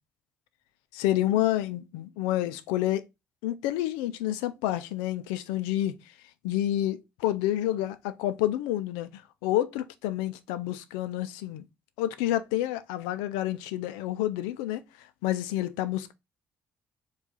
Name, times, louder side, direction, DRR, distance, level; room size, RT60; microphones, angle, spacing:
voice 1, 0.9-3.0 3.4-5.9 6.4-11.7 12.0-16.1, left 13 dB, 80° left, 0.4 m, -29 dB
4.7 x 2.4 x 3.9 m
hypercardioid pair, 50°, 8 cm